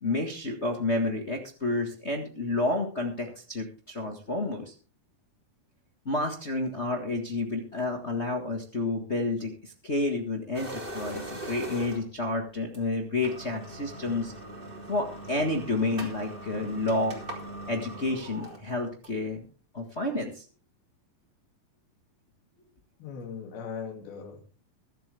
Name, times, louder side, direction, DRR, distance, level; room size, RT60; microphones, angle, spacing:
voice 1, 0.0-4.7 6.0-14.3 14.9-17.2 17.7-19.4 19.7-20.4, left 2 dB, 55° left, 2 dB, 0.7 m, -30 dB
sound 1, 10.5-12.2 12.7-12.8 13.1-19.3, right 1 dB, 15° right, 2.8 m, -41 dB
voice 2, 23.0-24.5, left 6 dB, 85° left, 3 dB, 4.4 m, -39 dB
23.0 x 7.8 x 3.4 m, 0.37 s
omnidirectional pair, 4.2 m